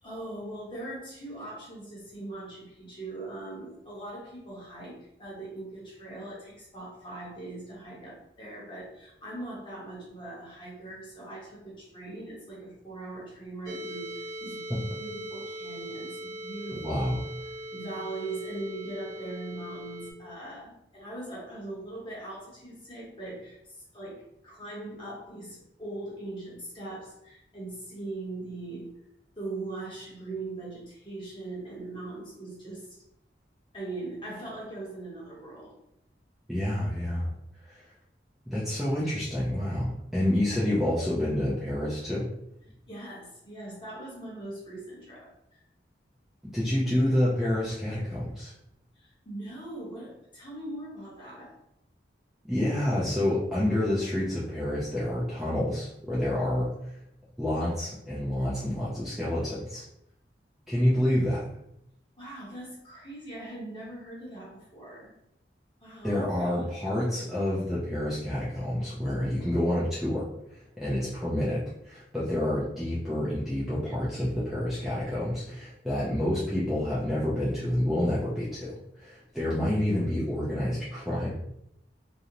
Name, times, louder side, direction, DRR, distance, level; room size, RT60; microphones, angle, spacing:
voice 1, 0.0-17.1 17.7-28.9 29.4-33.0 33.7-35.7 42.9-45.6 48.9-51.6 62.2-65.1 65.8-66.5 66.8-67.0, right 2 dB, 25° left, -6 dB, 0.8 m, -40 dB
sound 1, 13.7-20.1, right 1 dB, 65° right, 0.6 m, -40 dB
voice 2, 16.7-17.2 36.5-37.3 37.6-37.8 38.5-42.2 46.5-48.5 52.4-56.9 57.4-59.8 60.7-61.5 66.0-81.3, left 1 dB, ahead, -9 dB, 0.4 m, -28 dB
2.5 x 2.0 x 2.8 m, 0.79 s
head